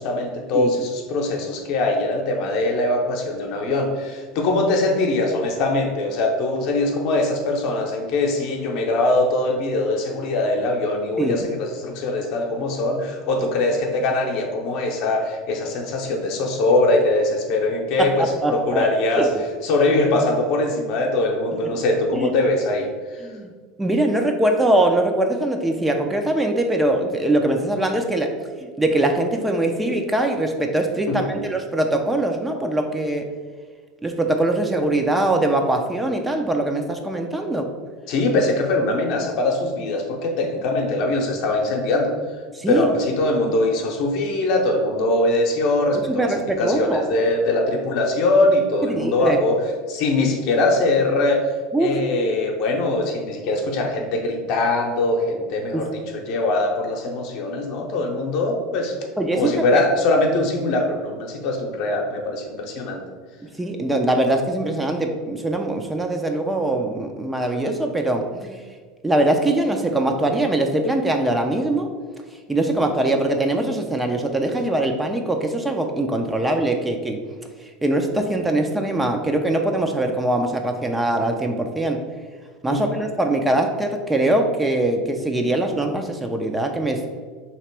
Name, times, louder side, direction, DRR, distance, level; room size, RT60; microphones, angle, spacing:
voice 1, 0.0-19.3 19.6-23.3 31.1-31.4 38.1-42.1 42.7-49.6 49.9-51.4 51.8-59.0 59.3-63.0 82.7-83.0, left 2 dB, 60° left, 1 dB, 0.7 m, -22 dB
voice 2, 18.0-18.9 19.2-19.3 22.1-22.3 23.2-23.5 23.8-28.3 28.8-33.3 34.0-37.7 42.5-42.9 46.1-47.0 48.8-49.4 51.7-52.0 55.7-55.9 59.2-59.8 63.6-68.6 69.0-71.9 72.5-77.2 77.8-82.0 82.6-87.0, right 1 dB, 10° right, 3 dB, 0.5 m, -22 dB
3.0 x 2.8 x 4.5 m, 1.5 s
hypercardioid pair, 80°, 0 cm